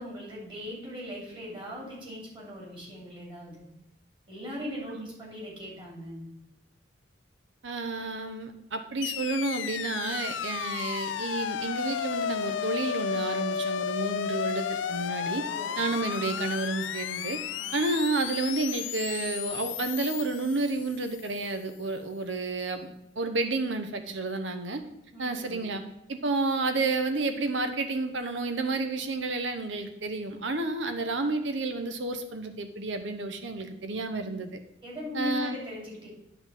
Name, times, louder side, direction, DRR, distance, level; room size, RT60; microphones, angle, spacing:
voice 1, 0.0-3.6 4.3-6.3 15.3-15.8 17.6-17.7 25.1-25.7 34.8-36.1, left 1 dB, 25° right, -4 dB, 3.1 m, -39 dB
voice 2, 7.6-15.4 15.8-17.4 17.7-22.9 23.2-24.8 25.2-25.8 26.1-34.6 35.1-35.6, right 3 dB, 80° right, 7 dB, 0.9 m, -30 dB
sound 1, 9.0-21.3, left 8 dB, 85° left, 0.4 m, -33 dB
9.5 x 3.9 x 7.2 m, 0.81 s
head